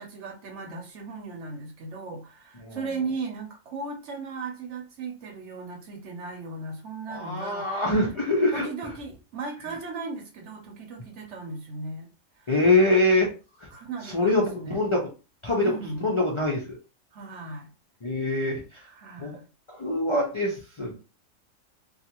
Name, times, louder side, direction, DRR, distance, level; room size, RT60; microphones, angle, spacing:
voice 1, 0.0-7.7 8.2-8.3 8.5-12.1 12.4-12.5 13.7-14.8 15.6-16.2 17.1-17.7 18.8-19.4, right 3 dB, 60° right, 3 dB, 0.9 m, -37 dB
voice 2, 7.1-8.7 12.5-13.3 13.6-13.7 14.0-15.1 15.4-15.8 16.0-16.8 18.0-18.6 19.2-19.4 19.7-20.9, left 2 dB, 50° left, -2 dB, 0.3 m, -24 dB
2.4 x 2.4 x 2.9 m, 0.32 s
omnidirectional pair, 1.5 m